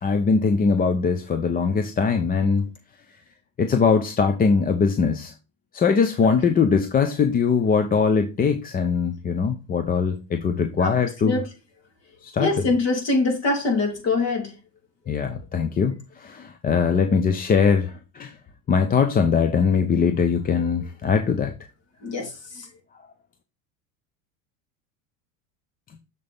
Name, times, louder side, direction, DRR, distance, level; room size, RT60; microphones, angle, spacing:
voice 1, 0.0-2.7 3.6-5.3 5.7-11.4 12.2-12.5 15.1-18.3 18.7-21.5, left 5 dB, 25° left, 0.8 m, -21 dB
voice 2, 12.4-14.5 22.0-22.7, left 3 dB, 40° left, 3.6 m, -24 dB
6.9 x 6.7 x 3.5 m
supercardioid pair, 125°, 38 cm